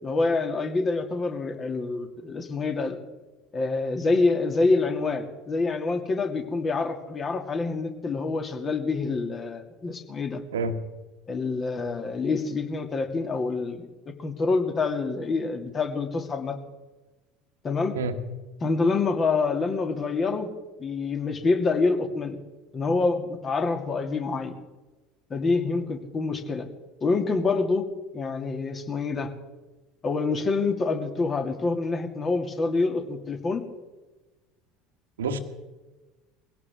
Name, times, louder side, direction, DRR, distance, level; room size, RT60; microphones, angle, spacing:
voice 1, 0.0-3.0 3.5-10.4 11.3-13.9 14.2-16.6 17.6-18.0 18.6-20.5 20.8-22.4 22.7-24.5 25.3-26.7 27.0-27.9 28.1-29.3 30.0-33.6, left 3 dB, 30° left, 5 dB, 2.2 m, -26 dB
voice 2, 10.5-10.7 17.9-18.1 35.2-35.4, right 3 dB, 75° right, 9 dB, 1.4 m, -27 dB
21.5 x 17.0 x 3.6 m, 1.2 s
figure-of-eight pair, 70°, 0 cm